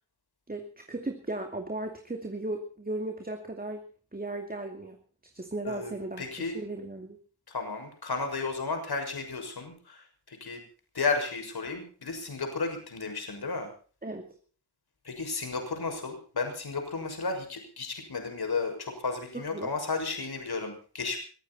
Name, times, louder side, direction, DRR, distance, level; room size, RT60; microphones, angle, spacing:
voice 1, 0.5-3.9 4.1-5.0 5.3-7.2 14.0-14.4 19.5-19.7, right 2 dB, 15° right, 4 dB, 2.5 m, -36 dB
voice 2, 5.6-6.6 7.5-10.6 10.9-13.7 15.0-21.2, left 4 dB, 50° left, 5 dB, 6.4 m, -33 dB
23.0 x 15.0 x 4.3 m, 0.42 s
cardioid pair, 90°, 49 cm